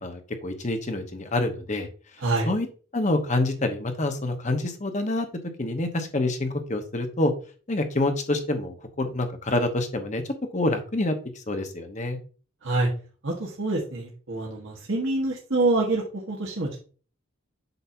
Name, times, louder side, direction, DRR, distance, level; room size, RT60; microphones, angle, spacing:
voice 1, 0.0-1.9 2.4-2.7 2.9-5.3 5.6-7.3 7.7-10.2 10.5-12.2, left 2 dB, 35° left, 6 dB, 0.9 m, -27 dB
voice 2, 2.2-2.5 12.6-12.9 13.2-16.8, right 2 dB, 70° right, -1 dB, 1.3 m, -26 dB
7.9 x 2.7 x 5.7 m, 0.39 s
head